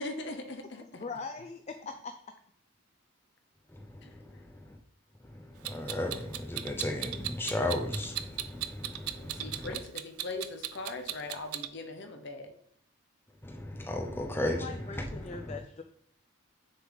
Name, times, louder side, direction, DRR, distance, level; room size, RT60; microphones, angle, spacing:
voice 1, 0.0-1.0 4.0-4.1 9.2-12.5, left 2 dB, 55° left, 0.9 m, -40 dB
voice 2, 1.0-2.1 14.4-15.8, left 4 dB, 30° left, 0.3 m, -41 dB
voice 3, 3.7-4.8 5.2-9.7 13.4-15.6, left 1 dB, 10° left, 0.7 m, -35 dB
Clock, 5.6-11.7, right 13 dB, 85° right, 0.4 m, -36 dB
6.6 x 3.9 x 4.9 m
head